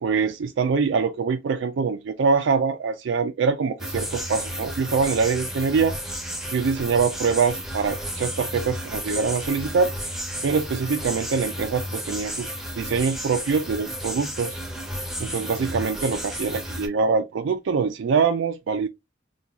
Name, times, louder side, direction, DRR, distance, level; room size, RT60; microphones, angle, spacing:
voice 1, 0.0-6.0 6.5-9.9 10.4-12.5 12.8-14.6 15.2-18.9, right 5 dB, 75° right, 0.4 m, -24 dB
sound 1, 3.8-16.9, equal, ahead, 0.6 m, -32 dB
3.8 x 2.3 x 2.8 m
head